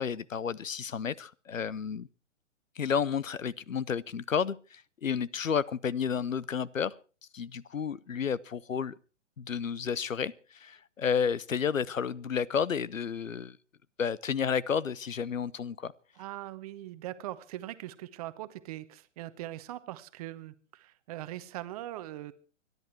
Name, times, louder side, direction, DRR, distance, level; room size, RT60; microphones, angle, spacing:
voice 1, 0.0-2.1 2.8-6.9 7.3-8.9 9.4-13.6 14.0-15.9, left 7 dB, 85° left, 0.8 m, -31 dB
voice 2, 16.2-22.3, right 14 dB, 30° right, 0.9 m, -41 dB
25.0 x 11.0 x 4.5 m
figure-of-eight pair, 130°, 38 cm